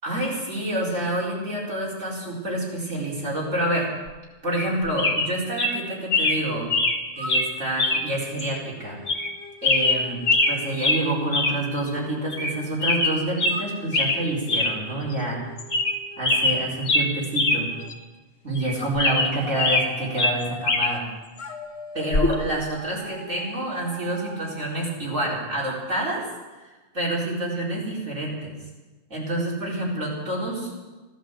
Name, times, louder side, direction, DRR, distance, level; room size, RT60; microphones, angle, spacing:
voice 1, 0.0-3.9 4.4-6.7 7.1-9.0 9.6-15.4 16.2-17.8 18.4-21.1 21.9-26.2 26.6-26.7 26.9-28.5 29.1-30.7, right 1 dB, 70° right, -5 dB, 5.0 m, -28 dB
sound 1, 4.5-4.7 5.0-5.3 5.6-5.7 6.1-6.4 6.7-7.0 7.3-7.5 7.8-8.0 8.4-8.5 9.1-9.3 9.6-10.6 10.8-11.0 11.3-11.6 11.9-12.0 12.3-12.5 12.8-13.6 13.9-14.2 14.5-14.7 15.1-15.2 15.6-16.0 16.2-17.6 17.9-18.0 18.6-19.9 20.2-20.9 22.1-22.3, left 2 dB, 75° left, 1.9 m, -22 dB
sound 2, 7.1-12.7 13.5-17.9 18.8-21.0 21.4-24.6, left 2 dB, 50° left, 1.9 m, -42 dB
15.0 x 12.0 x 7.7 m, 1.2 s
omnidirectional pair, 1.3 m